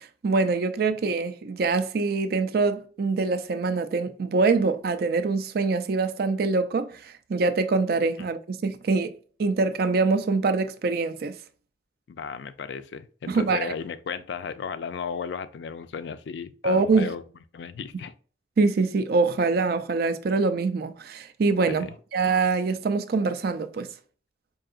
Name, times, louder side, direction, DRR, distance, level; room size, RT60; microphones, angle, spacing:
voice 1, 0.0-9.1 9.4-11.3 13.3-13.7 16.6-17.1 18.6-23.9, right 4 dB, 55° right, 0.4 m, -24 dB
voice 2, 12.1-17.2 17.5-18.1 21.7-21.9, left 6 dB, 70° left, 0.3 m, -35 dB
4.6 x 2.8 x 2.4 m
head